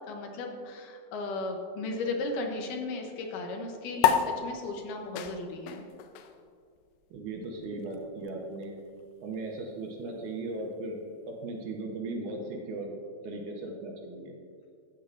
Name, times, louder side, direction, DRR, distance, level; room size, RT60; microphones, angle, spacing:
voice 1, 0.1-5.9, left 2 dB, 75° left, 3 dB, 2.3 m, -35 dB
sound 1, 4.0-10.8, left 9 dB, 90° left, 2.4 m, -33 dB
voice 2, 7.1-8.8 9.2-11.0 11.3-13.0 13.2-14.3, right 2 dB, 70° right, 0 dB, 2.1 m, -37 dB
13.5 x 8.0 x 2.5 m, 2.2 s
omnidirectional pair, 4.1 m